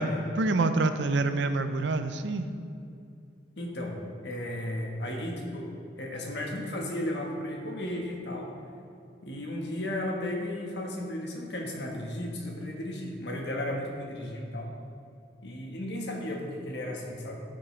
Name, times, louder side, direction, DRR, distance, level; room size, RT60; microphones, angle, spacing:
voice 1, 0.4-2.5, right 3 dB, 80° right, 9 dB, 0.6 m, -26 dB
voice 2, 3.6-3.9 4.2-5.7 6.0-8.5 9.2-14.7 15.4-17.4, left 1 dB, 70° left, 0 dB, 1.4 m, -34 dB
14.0 x 6.2 x 3.3 m, 2.5 s
head